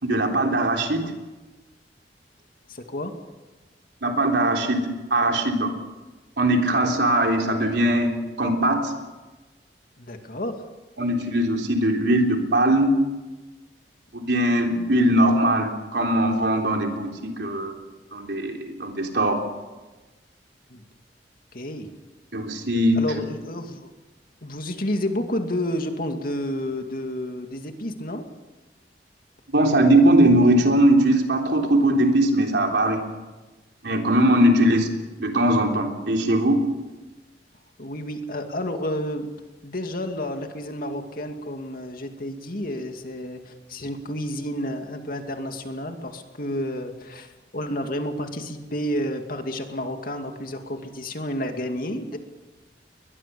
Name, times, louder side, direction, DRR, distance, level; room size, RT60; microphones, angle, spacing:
voice 1, 0.0-1.1 4.0-5.7 6.4-8.9 11.0-13.0 14.1-17.8 18.1-19.4 22.3-23.0 29.5-33.0 33.8-34.9 35.2-36.6, right 1 dB, 75° right, 2 dB, 3.6 m, -20 dB
voice 2, 2.7-3.1 10.0-10.6 20.7-20.8 21.5-21.9 23.0-23.9 24.4-28.2 37.8-39.3 39.6-52.2, left 1 dB, 55° left, 5 dB, 2.4 m, -30 dB
22.0 x 21.5 x 7.0 m, 1.2 s
head